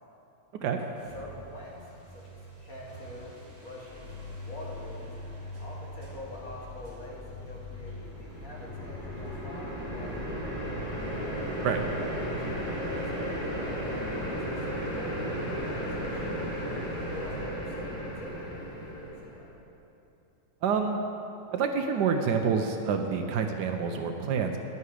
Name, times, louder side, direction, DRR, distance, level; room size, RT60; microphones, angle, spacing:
sound 1, 0.7-19.2, left 2 dB, 30° right, 1.6 m, -45 dB
voice 1, 1.1-1.9 2.2-5.1 5.6-10.7 12.4-16.8 17.1-19.5, left 1 dB, 50° left, -4 dB, 2.0 m, -46 dB
sound 2, 8.0-19.4, equal, 30° left, 1.7 m, -34 dB
voice 2, 20.6-21.0 21.5-24.6, right 6 dB, 75° right, 5 dB, 1.1 m, -27 dB
11.0 x 8.3 x 4.8 m, 2.9 s
omnidirectional pair, 2.0 m